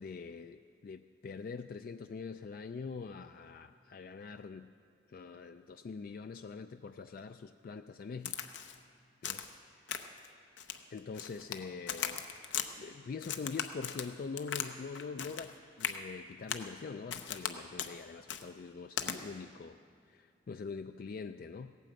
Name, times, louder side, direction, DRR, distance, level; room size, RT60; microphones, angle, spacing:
voice 1, 0.0-4.7 5.1-8.4 9.2-9.4 10.9-12.3 12.8-19.8 20.1-21.8, left 5 dB, 50° left, 9 dB, 0.3 m, -44 dB
Crack, 8.2-8.8 9.2-9.6 9.9-10.3 10.6-11.6 11.9-12.7 13.2-14.7 14.9-15.5 15.8-16.0 16.5-16.7 17.1-17.5 17.8-17.9 18.3-18.4 19.0-19.2, left 8 dB, 80° left, 0.8 m, -38 dB
17.0 x 9.1 x 7.6 m, 2.3 s
head